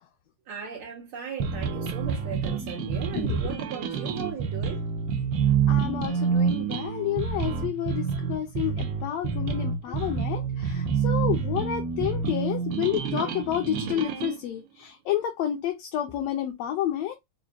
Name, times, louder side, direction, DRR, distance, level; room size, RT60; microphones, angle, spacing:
voice 1, 0.5-4.8, right 7 dB, 85° right, 1.1 m, -37 dB
sound 1, 1.4-14.4, right 6 dB, 70° right, 1.5 m, -28 dB
voice 2, 5.7-17.1, left 11 dB, 75° left, 1.6 m, -30 dB
5.1 x 2.2 x 2.7 m
omnidirectional pair, 3.5 m